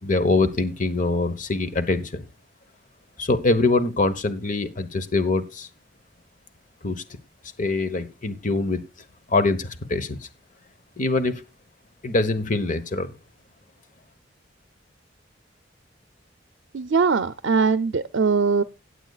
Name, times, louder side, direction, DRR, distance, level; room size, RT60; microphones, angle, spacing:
voice 1, 0.0-2.2 3.2-5.7 6.8-7.0 7.6-8.8 9.3-10.2 11.0-11.4 12.0-13.1, left 3 dB, 45° left, 11 dB, 1.1 m, -23 dB
voice 2, 16.7-18.6, right 4 dB, 70° right, 12 dB, 0.5 m, -21 dB
17.5 x 8.1 x 2.4 m, 0.25 s
head